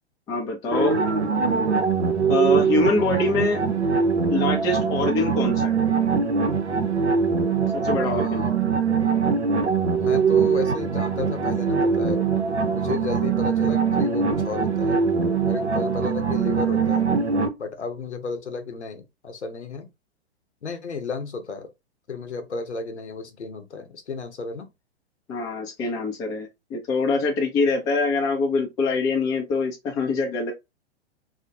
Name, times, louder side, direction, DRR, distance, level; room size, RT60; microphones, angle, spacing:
voice 1, 0.3-1.0 2.3-3.6 4.3-5.8 7.7-8.4 25.3-30.5, left 3 dB, 10° left, 0.4 m, -24 dB
sound 1, 0.7-17.5, right 5 dB, 80° right, 0.6 m, -22 dB
voice 2, 8.0-8.5 10.0-12.3 12.7-15.0 15.4-17.1 17.6-19.9 20.6-21.7 22.1-24.7, left 4 dB, 85° left, 0.7 m, -33 dB
2.3 x 2.0 x 2.7 m
figure-of-eight pair, 105°, 33 cm